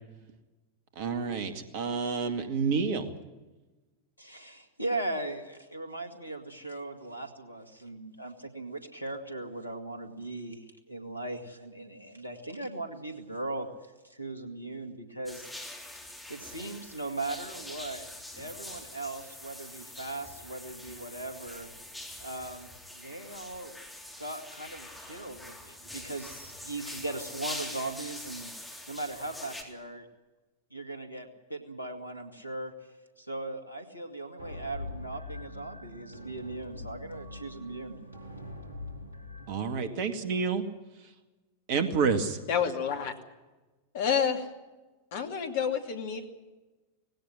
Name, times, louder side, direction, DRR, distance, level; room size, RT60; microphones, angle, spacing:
voice 1, 1.0-3.1 39.5-40.7 41.7-42.4, right 5 dB, 50° right, 9 dB, 2.2 m, -29 dB
voice 2, 4.2-13.7 14.0-15.5 16.3-18.1 18.4-21.7 22.2-22.7 22.9-23.7 24.2-28.5 28.9-30.1 30.7-32.7 33.2-38.0, right 2 dB, 85° left, 7 dB, 2.1 m, -38 dB
sound 1, 15.3-29.6, left 1 dB, ahead, 3.8 m, -44 dB
sound 2, 34.4-39.6, left 2 dB, 80° right, 2.7 m, -43 dB
voice 3, 42.5-43.1 43.9-44.5 45.1-46.2, left 7 dB, 55° left, 6 dB, 2.5 m, -29 dB
19.0 x 16.5 x 10.0 m, 1.2 s
figure-of-eight pair, 90°, 0 cm